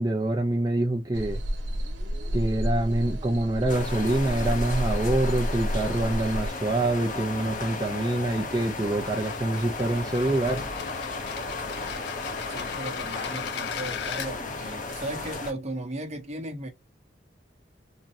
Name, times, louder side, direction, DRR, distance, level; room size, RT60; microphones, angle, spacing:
voice 1, 0.0-1.4 2.3-10.7, right 2 dB, 20° right, 0.7 m, -26 dB
sound 1, 1.1-6.5, equal, 90° right, 0.9 m, -30 dB
sound 2, 3.7-15.5, left 3 dB, 45° left, 0.8 m, -35 dB
sound 3, 9.0-14.3, left 7 dB, 65° left, 0.4 m, -37 dB
voice 2, 12.5-16.7, right 1 dB, 40° right, 1.0 m, -36 dB
3.8 x 2.1 x 2.8 m
head